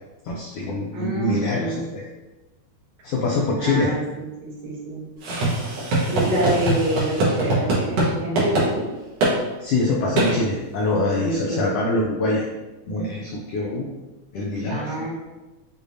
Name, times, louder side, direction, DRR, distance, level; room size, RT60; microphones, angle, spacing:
voice 1, 0.2-2.0 3.0-3.9 9.6-12.4 12.9-13.9 14.3-14.9, left 2 dB, 90° left, -2 dB, 1.3 m, -24 dB
voice 2, 0.9-1.9 3.6-5.1 6.1-8.8 11.2-11.7 14.7-15.1, right 1 dB, 85° right, -6 dB, 2.8 m, -27 dB
sound 1, 5.2-8.1 8.4-8.7 9.2-9.3 10.2-10.3, right 2 dB, 60° right, 1.9 m, -22 dB
6.5 x 2.6 x 2.6 m, 1.1 s
omnidirectional pair, 3.3 m